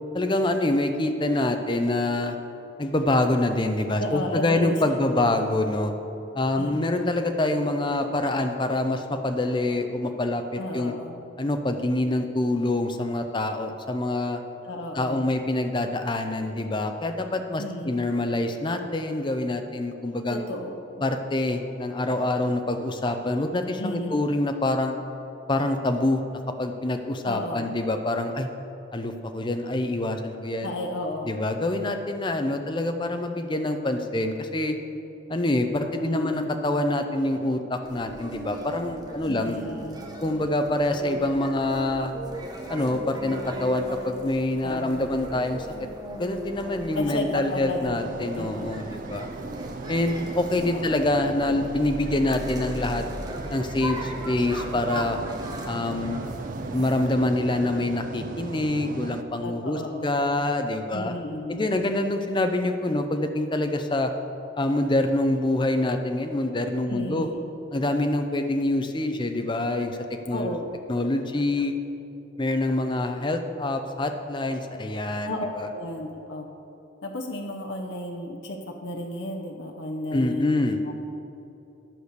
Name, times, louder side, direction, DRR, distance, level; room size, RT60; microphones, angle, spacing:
voice 1, 0.1-2.4 2.8-5.9 6.3-10.9 11.4-14.4 15.0-20.4 21.0-25.0 25.5-26.2 26.6-28.5 28.9-30.7 31.3-34.7 35.3-39.6 40.2-42.1 42.7-45.9 46.2-49.3 49.9-53.0 53.5-55.2 55.7-56.2 56.7-61.1 61.5-64.1 64.6-67.3 67.7-70.0 70.3-70.5 70.9-71.7 72.4-75.7 80.1-80.8, left 1 dB, 25° left, 6 dB, 0.5 m, -26 dB
voice 2, 4.0-5.5 6.6-7.0 10.5-11.2 14.6-15.3 17.6-18.0 20.3-21.0 23.8-24.3 27.2-27.8 30.6-31.4 35.8-36.4 39.3-40.1 44.6-45.1 46.9-48.7 50.7-51.0 59.4-60.4 60.9-61.7 66.9-67.4 70.3-70.7 75.2-76.5 77.0-80.9, left 1 dB, 65° left, 2 dB, 0.8 m, -33 dB
sound 1, 37.8-57.1, right 1 dB, 20° right, 0.9 m, -38 dB
sound 2, 48.0-59.2, right 3 dB, 45° right, 0.4 m, -37 dB
10.5 x 4.9 x 6.7 m, 2.9 s
head